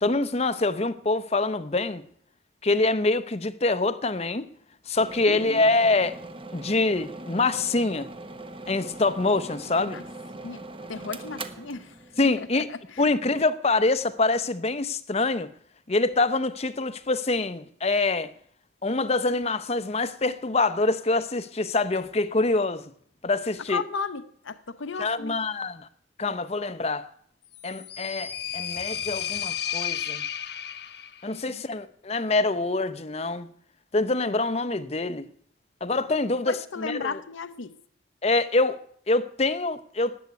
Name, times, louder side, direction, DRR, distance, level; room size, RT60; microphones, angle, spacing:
voice 1, 0.0-2.0 2.6-4.5 4.9-6.2 6.5-8.1 8.7-10.0 12.2-12.7 13.0-15.5 15.9-18.3 18.8-22.8 23.2-23.8 25.0-25.9 26.2-27.1 27.6-30.2 31.2-33.5 33.9-35.3 35.8-37.2 38.2-38.8 39.1-40.2, left 2 dB, 35° left, 0.7 m, -25 dB
sound 1, 5.0-12.6, right 2 dB, 25° right, 1.1 m, -41 dB
voice 2, 5.3-5.7 9.9-10.0 10.3-10.6 10.9-12.0 12.4-13.1 23.7-25.4 31.5-31.6 36.5-37.8, left 5 dB, 80° left, 0.8 m, -35 dB
sound 2, 27.5-31.3, left 9 dB, 55° left, 1.1 m, -33 dB
19.0 x 8.1 x 9.4 m
head